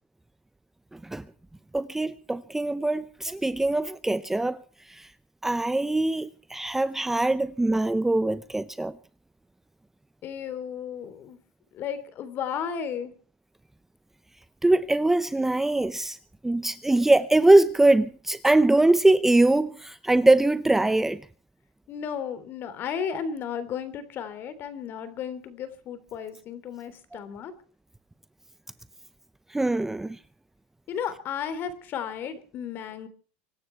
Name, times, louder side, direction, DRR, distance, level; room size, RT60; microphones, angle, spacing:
voice 1, 0.9-1.2 1.7-4.6 4.9-5.1 5.4-8.9 14.6-16.2 16.4-21.2 29.5-30.2, right 2 dB, 5° right, 0.7 m, -22 dB
voice 2, 10.2-11.4 11.7-13.1 21.9-27.5 30.9-33.1, left 7 dB, 40° left, 3.4 m, -34 dB
25.0 x 12.5 x 4.6 m
supercardioid pair, 130°, 5 cm